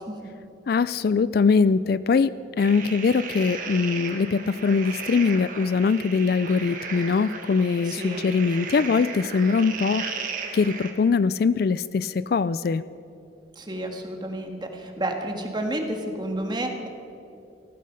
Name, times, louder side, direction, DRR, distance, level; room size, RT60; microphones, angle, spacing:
voice 1, 0.7-12.8, left 5 dB, 55° left, 16 dB, 0.3 m, -22 dB
sound 1, 2.6-10.9, right 5 dB, 45° right, 1.7 m, -35 dB
voice 2, 7.8-8.2 13.5-16.9, right 1 dB, 25° right, 3 dB, 1.6 m, -30 dB
18.5 x 14.5 x 5.1 m, 2.6 s
head